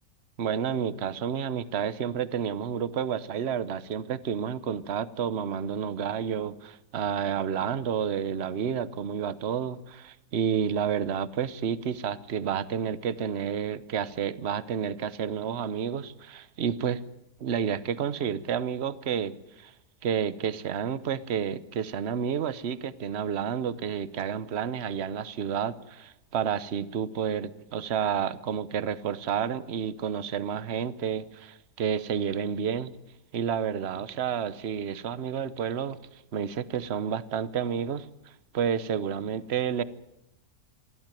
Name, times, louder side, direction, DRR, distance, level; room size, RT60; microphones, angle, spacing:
voice 1, 0.4-17.0 17.4-19.7 20.0-32.9 33.3-36.0 36.3-38.1 38.5-39.8, right 8 dB, 50° right, 15 dB, 0.9 m, -30 dB
26.5 x 12.0 x 9.2 m, 0.90 s
omnidirectional pair, 1.8 m